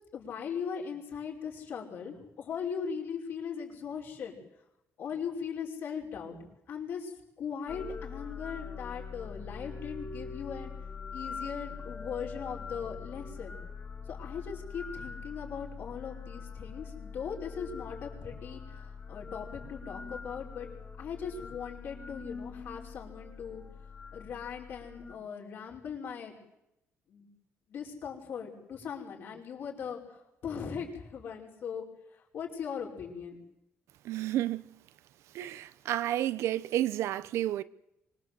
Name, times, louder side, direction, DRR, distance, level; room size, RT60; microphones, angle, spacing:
voice 1, 0.1-4.4 5.0-6.4 6.7-10.7 11.1-13.5 14.1-20.7 21.0-23.6 24.1-26.3 27.1-27.3 27.7-33.4, left 7 dB, 55° left, 5.5 m, -39 dB
sound 1, 7.7-25.1, left 5 dB, 25° left, 2.2 m, -43 dB
voice 2, 34.0-34.6 35.3-37.6, right 13 dB, 85° right, 0.8 m, -31 dB
25.0 x 21.5 x 7.9 m
cardioid pair, 180°, 5 cm